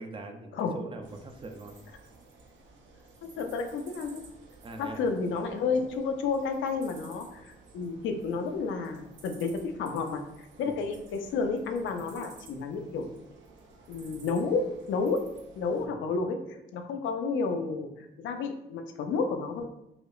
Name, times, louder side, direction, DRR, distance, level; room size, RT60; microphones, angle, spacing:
voice 1, 0.0-1.8 4.6-5.0 10.6-10.8 15.8-15.9, right 2 dB, 25° right, 5 dB, 0.4 m, -42 dB
sound 1, 1.0-15.9, right 3 dB, 70° right, 0.7 m, -54 dB
voice 2, 3.2-4.2 4.8-10.2 10.6-13.1 13.9-15.2 15.6-19.7, left 4 dB, 75° left, 6 dB, 0.5 m, -31 dB
4.8 x 2.0 x 2.4 m, 0.88 s
cardioid pair, 90°, 20 cm